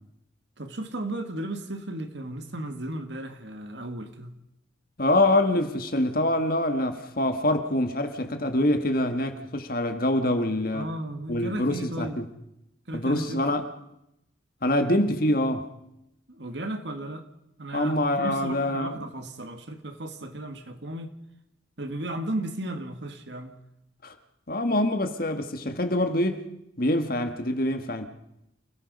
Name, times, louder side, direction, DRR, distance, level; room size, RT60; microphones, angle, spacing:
voice 1, 0.6-4.4 10.7-12.2 12.9-13.4 16.3-17.3 17.6-21.1 21.8-23.6, right 1 dB, 65° right, 2.0 m, -35 dB
voice 2, 5.0-10.9 11.3-12.3 12.9-13.6 14.6-15.6 17.7-19.0 24.0-24.1 24.5-26.4 26.8-28.1, left 1 dB, 50° left, 1.8 m, -25 dB
29.0 x 16.5 x 5.5 m
head